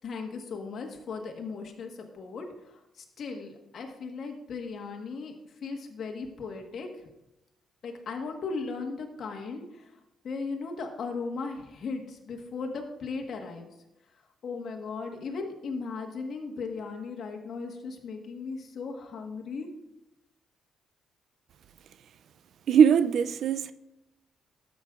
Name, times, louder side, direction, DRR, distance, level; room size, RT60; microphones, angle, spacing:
voice 1, 0.0-5.3 5.6-6.9 7.8-9.6 10.2-13.7 14.4-19.7, left 4 dB, 60° left, 1.4 m, -37 dB
voice 2, 22.7-23.7, right 7 dB, 65° right, 0.4 m, -20 dB
12.5 x 7.5 x 2.5 m
cardioid pair, 90°, 0 cm